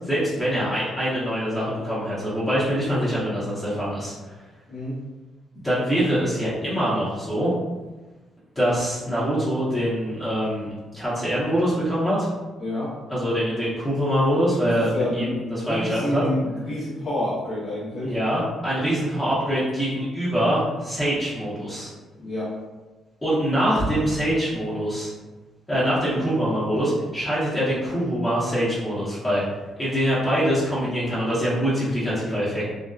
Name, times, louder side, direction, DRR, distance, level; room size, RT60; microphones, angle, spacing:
voice 1, 0.0-4.1 5.6-7.5 8.6-10.7 10.9-12.3 13.1-16.2 18.0-21.9 23.2-25.1 25.7-29.4 29.8-32.7, equal, 20° left, -10 dB, 0.8 m, -24 dB
voice 2, 12.6-12.9 14.6-18.1 22.2-22.5, left 1 dB, 55° left, -10 dB, 0.8 m, -28 dB
2.5 x 2.1 x 2.3 m, 1.2 s
cardioid pair, 90°, 0 cm